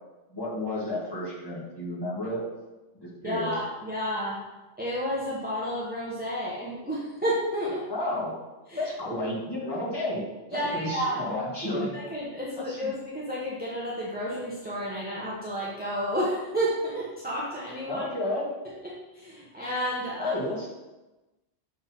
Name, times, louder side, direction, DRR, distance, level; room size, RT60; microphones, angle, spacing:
voice 1, 0.3-2.4 3.0-3.5 7.9-8.4 8.8-10.2 10.5-11.9 12.6-12.8 17.9-18.5 20.1-20.7, left 1 dB, 20° left, -8 dB, 2.1 m, -31 dB
voice 2, 3.2-4.4 4.8-7.9 8.7-9.1 10.5-11.2 11.7-18.0 18.6-20.3, equal, 10° right, -7 dB, 1.1 m, -31 dB
6.7 x 3.9 x 4.3 m, 1.1 s
omnidirectional pair, 1.2 m